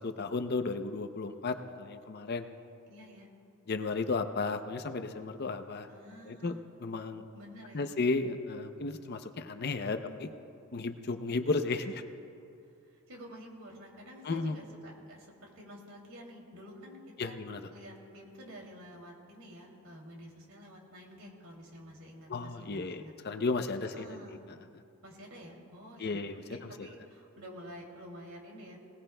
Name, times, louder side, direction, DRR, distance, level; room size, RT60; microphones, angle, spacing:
voice 1, 0.0-2.5 3.7-5.9 6.3-6.5 6.8-7.2 7.7-10.3 10.7-11.8 14.2-14.6 17.2-17.6 22.3-24.2 26.0-26.4, left 3 dB, 45° left, 8 dB, 0.6 m, -33 dB
voice 2, 2.9-3.3 5.9-6.6 7.3-7.9 9.9-10.2 11.7-11.8 12.9-17.4 17.7-23.1 23.8-24.4 25.0-28.8, equal, 70° right, -1 dB, 2.7 m, -50 dB
20.5 x 19.0 x 2.2 m, 2.5 s
head